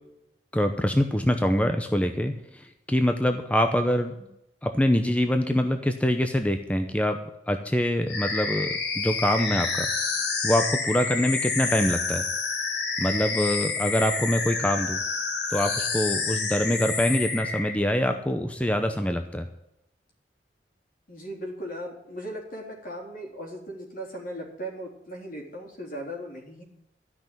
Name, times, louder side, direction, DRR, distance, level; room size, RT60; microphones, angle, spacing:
voice 1, 0.5-4.1 4.6-7.2 7.5-8.7 8.9-9.9 10.4-12.3 13.0-15.0 15.5-19.5, equal, 10° left, 6 dB, 0.7 m, -24 dB
sound 1, 8.1-17.7, left 4 dB, 70° left, 1.9 m, -29 dB
voice 2, 21.1-26.6, equal, 55° left, 0 dB, 3.6 m, -37 dB
13.0 x 6.1 x 9.0 m, 0.85 s
head